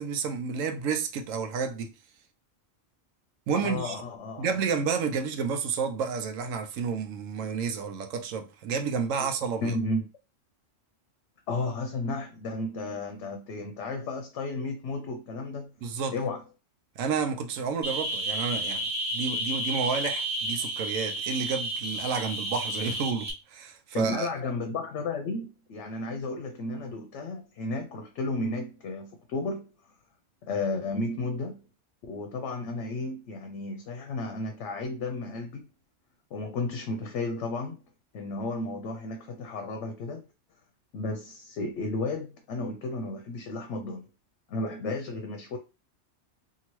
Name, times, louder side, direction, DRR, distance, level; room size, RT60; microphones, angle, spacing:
voice 1, 0.0-1.9 3.5-4.0 4.4-9.8 15.8-16.1 17.0-18.8 19.1-24.3, right 6 dB, 90° right, 1.0 m, -30 dB
voice 2, 3.5-4.5 9.6-10.0 11.5-15.7 16.1-16.4 23.9-29.7 30.5-31.6 32.0-35.6 36.3-37.8 38.1-40.3 40.9-44.1 44.5-45.6, left 2 dB, 70° left, 0.8 m, -33 dB
sound 1, 17.8-23.3, right 1 dB, 20° right, 0.5 m, -31 dB
2.8 x 2.6 x 2.9 m
omnidirectional pair, 1.3 m